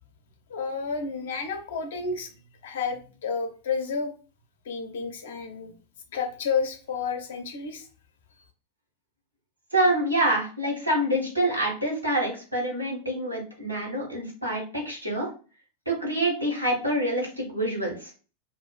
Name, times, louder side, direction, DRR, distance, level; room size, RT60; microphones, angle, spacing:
voice 1, 0.5-2.3 2.6-4.1 4.7-5.7 6.1-7.9, left 5 dB, 60° left, 5 dB, 0.5 m, -30 dB
voice 2, 9.7-15.3 15.9-18.1, right 1 dB, 90° right, -3 dB, 1.0 m, -26 dB
2.5 x 2.4 x 2.2 m, 0.36 s
figure-of-eight pair, 90°, 0 cm